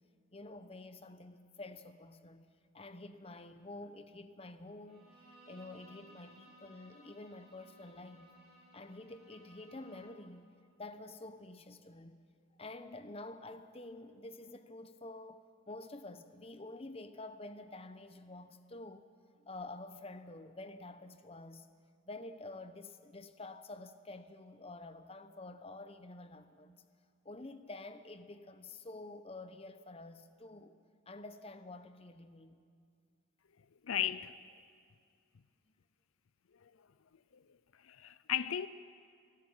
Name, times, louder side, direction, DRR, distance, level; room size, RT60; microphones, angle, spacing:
voice 1, 0.3-2.4 2.7-8.4 8.7-10.5 10.8-12.2 12.6-19.1 19.4-21.7 22.1-26.8 27.2-30.8 31.1-32.6, left 2 dB, 30° left, 0.9 m, -49 dB
Bowed string instrument, 4.9-10.3, right 1 dB, ahead, 7.1 m, -60 dB
voice 2, 33.8-34.3 37.8-38.7, left 10 dB, 75° left, 0.5 m, -34 dB
24.5 x 12.5 x 9.9 m
head